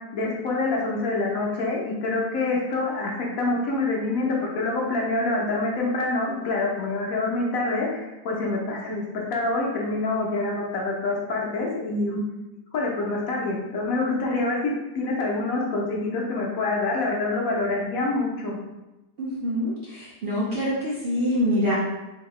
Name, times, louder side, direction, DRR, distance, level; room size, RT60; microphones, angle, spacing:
voice 1, 0.1-12.2 12.7-18.6, left 2 dB, 65° left, -2 dB, 1.1 m, -26 dB
voice 2, 19.2-21.7, equal, 60° right, -6 dB, 0.6 m, -25 dB
3.6 x 2.8 x 3.1 m, 1.0 s
omnidirectional pair, 1.7 m